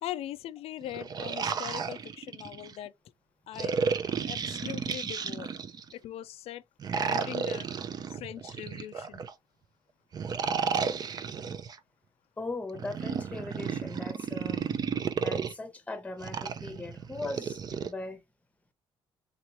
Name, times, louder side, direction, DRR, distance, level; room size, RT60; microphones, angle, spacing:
voice 1, 0.0-2.9 3.5-3.7 4.2-5.5 5.9-6.6 7.1-7.7 8.1-9.2, left 13 dB, 70° left, 0.4 m, -40 dB
sound 1, 0.8-2.7 3.6-5.9 6.8-9.3 10.1-11.8 12.7-15.5 16.2-17.9, right 6 dB, 40° right, 0.5 m, -33 dB
voice 2, 12.4-14.7 15.2-18.2, left 2 dB, 15° left, 0.8 m, -39 dB
3.7 x 3.0 x 2.9 m
cardioid pair, 110°, 11 cm